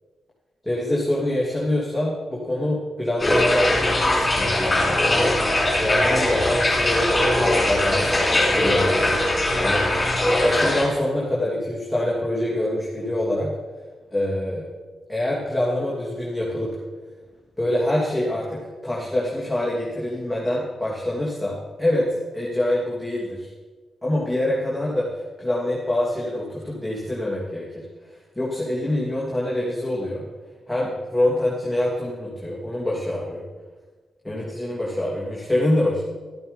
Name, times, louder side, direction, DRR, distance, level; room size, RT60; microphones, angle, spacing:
voice 1, 0.6-3.8 4.1-5.0 5.8-7.1 7.6-8.2 8.6-9.2 9.6-9.8 10.4-13.5 14.1-14.7 15.1-16.7 17.6-22.1 22.3-23.5 24.0-25.1 25.4-27.8 28.3-30.2 30.7-33.4 34.2-36.0, left 1 dB, 5° left, -6 dB, 2.9 m, -25 dB
sound 1, 3.2-10.9, left 1 dB, 25° left, 4.1 m, -20 dB
13.0 x 8.5 x 5.4 m, 1.4 s
cardioid pair, 65°, 0 cm